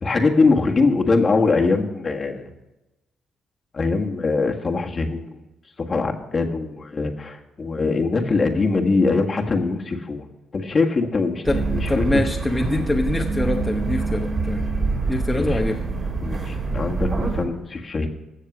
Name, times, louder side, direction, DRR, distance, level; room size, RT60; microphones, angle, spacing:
voice 1, 0.0-2.4 3.7-5.3 5.8-10.3 10.5-11.4 11.7-12.0 15.3-15.6 16.2-18.1, left 3 dB, 35° left, 3 dB, 1.6 m, -22 dB
sound 1, 11.4-17.4, right 3 dB, 40° right, 3.0 m, -25 dB
voice 2, 11.9-14.7 15.1-15.8, left 2 dB, 15° left, 1 dB, 1.0 m, -24 dB
15.5 x 6.6 x 6.1 m, 0.99 s
cardioid pair, 90°, 0 cm